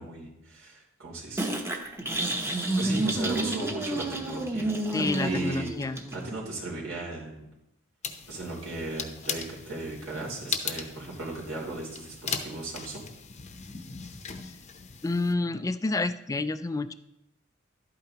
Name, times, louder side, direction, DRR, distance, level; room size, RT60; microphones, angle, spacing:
voice 1, 0.0-1.5 2.3-5.7 6.1-7.5 8.3-13.0, right 2 dB, 80° right, -4 dB, 3.0 m, -36 dB
sound 1, 1.4-6.4, right 2 dB, 15° right, 0.8 m, -30 dB
voice 2, 4.9-6.0 15.0-16.9, left 3 dB, 15° left, 13 dB, 0.3 m, -29 dB
sound 2, 8.0-15.3, left 6 dB, 35° left, 0.7 m, -38 dB
11.5 x 8.8 x 2.9 m, 0.86 s
head